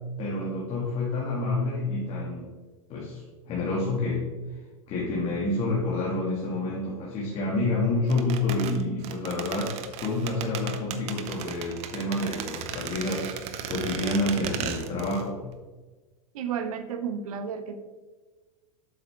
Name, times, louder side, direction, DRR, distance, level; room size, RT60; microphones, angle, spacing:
voice 1, 0.2-2.5 2.9-4.2 4.9-9.7 10.0-15.4, left 2 dB, 35° left, -5 dB, 1.8 m, -28 dB
sound 1, 8.1-15.3 15.5-15.6, right 8 dB, 35° right, 0.7 m, -35 dB
voice 2, 16.3-17.8, right 7 dB, 75° right, 9 dB, 0.9 m, -32 dB
8.0 x 6.5 x 3.4 m, 1.3 s
supercardioid pair, 135°, 19 cm